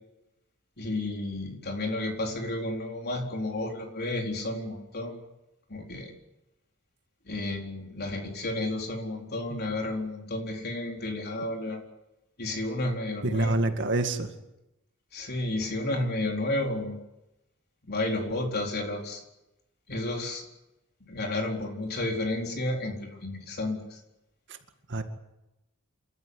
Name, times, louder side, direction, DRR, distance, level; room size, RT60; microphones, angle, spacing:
voice 1, 0.8-5.2 5.7-6.1 7.2-11.8 12.4-13.7 15.1-17.0 17.9-19.2 19.9-20.4 21.1-24.0, left 2 dB, 50° left, 2 dB, 4.3 m, -32 dB
voice 2, 13.2-14.3 24.5-24.6 24.9-25.0, right 2 dB, 55° right, 6 dB, 2.2 m, -27 dB
28.5 x 13.5 x 9.9 m, 0.93 s
head